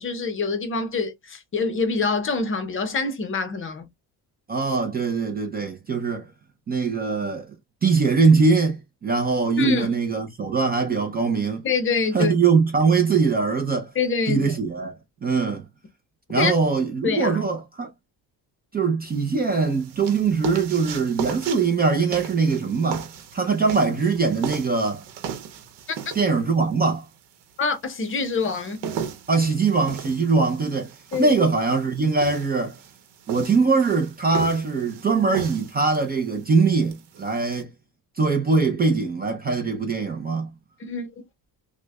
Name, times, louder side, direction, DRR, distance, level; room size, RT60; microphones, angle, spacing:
voice 1, 0.0-3.8 9.6-9.9 11.6-12.3 14.0-14.5 16.4-16.5 17.0-17.4 27.6-28.8 31.1-31.4 40.8-41.1, left 4 dB, 30° left, 0.6 m, -25 dB
voice 2, 4.5-6.3 6.7-7.5 7.8-11.6 12.1-13.9 14.3-15.0 15.2-15.6 16.3-17.9 18.7-25.0 26.1-27.1 29.3-32.8 33.3-37.7 38.2-40.5, right 4 dB, 25° right, 0.4 m, -22 dB
sound 1, 19.1-37.6, right 7 dB, 75° right, 0.9 m, -37 dB
6.0 x 2.1 x 2.2 m
cardioid pair, 175°, 42 cm